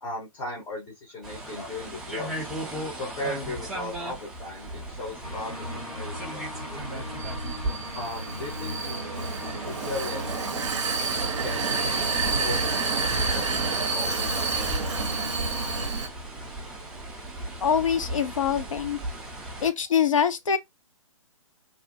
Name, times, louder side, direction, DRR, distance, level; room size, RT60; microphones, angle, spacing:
voice 1, 0.0-2.5 3.0-7.1 7.9-8.9 9.6-10.3 11.4-12.0 12.4-12.8 13.1-14.7, left 2 dB, 20° left, 0.7 m, -37 dB
sound 1, 1.2-19.7, right 2 dB, ahead, 0.3 m, -37 dB
sound 2, 5.2-15.9, left 1 dB, 90° left, 1.0 m, -37 dB
Vehicle, 6.7-16.1, right 4 dB, 55° right, 0.5 m, -29 dB
voice 2, 17.6-19.0 19.6-20.6, left 7 dB, 60° left, 0.5 m, -24 dB
2.5 x 2.1 x 2.7 m
figure-of-eight pair, 130°, 18 cm